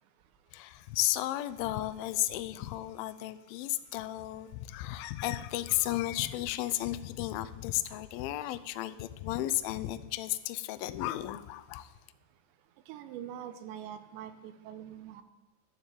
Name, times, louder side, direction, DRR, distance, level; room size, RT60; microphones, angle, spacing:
voice 1, 0.5-11.9, left 15 dB, 85° left, 13 dB, 2.1 m, -34 dB
voice 2, 12.9-15.2, right 10 dB, 85° right, 10 dB, 3.1 m, -43 dB
12.0 x 7.3 x 8.5 m, 1.2 s
omnidirectional pair, 5.1 m